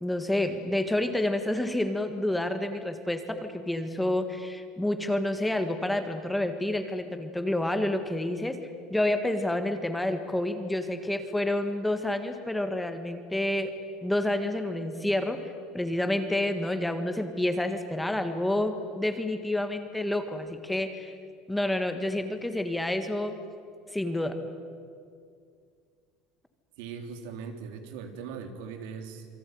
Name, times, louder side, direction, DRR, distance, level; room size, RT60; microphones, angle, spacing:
voice 1, 0.0-8.6 8.9-13.7 14.0-15.4 15.7-21.1 21.5-23.4 23.9-24.4, left 1 dB, 5° left, 8 dB, 1.6 m, -29 dB
voice 2, 26.8-29.3, right 6 dB, 85° right, 6 dB, 3.6 m, -40 dB
28.0 x 22.5 x 9.3 m, 2.2 s
cardioid pair, 160°, 0 cm